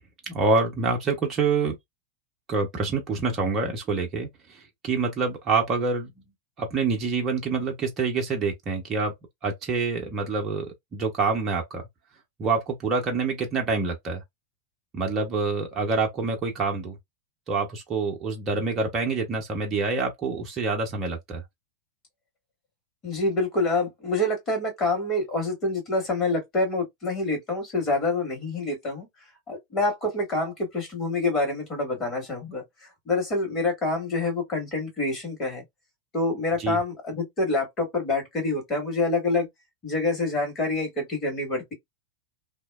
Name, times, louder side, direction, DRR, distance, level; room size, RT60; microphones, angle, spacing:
voice 1, 0.3-1.8 2.5-6.1 6.6-9.1 9.4-10.7 10.9-11.8 12.4-14.2 14.9-16.9 17.5-21.4 36.6-36.8, right 4 dB, 25° right, 0.8 m, -26 dB
voice 2, 23.0-29.1 29.5-32.6 33.1-35.6 36.1-39.5 39.8-41.7, left 2 dB, 25° left, 1.8 m, -26 dB
2.8 x 2.1 x 2.3 m
figure-of-eight pair, 90°, 0 cm